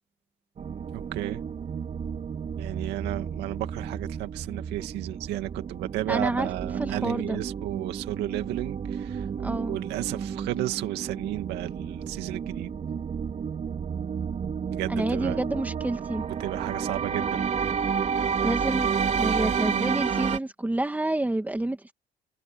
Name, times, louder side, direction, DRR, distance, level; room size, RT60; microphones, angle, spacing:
sound 1, 0.6-20.4, right 6 dB, 40° right, 4.1 m, -31 dB
voice 1, 0.9-1.4 2.6-9.3 9.7-12.7 14.7-15.4 16.4-17.4, right 16 dB, 90° right, 2.3 m, -33 dB
voice 2, 6.1-6.5 6.8-7.4 9.4-9.8 14.9-16.2 18.4-21.9, right 1 dB, 10° right, 2.0 m, -29 dB
cardioid pair, 110°, 17 cm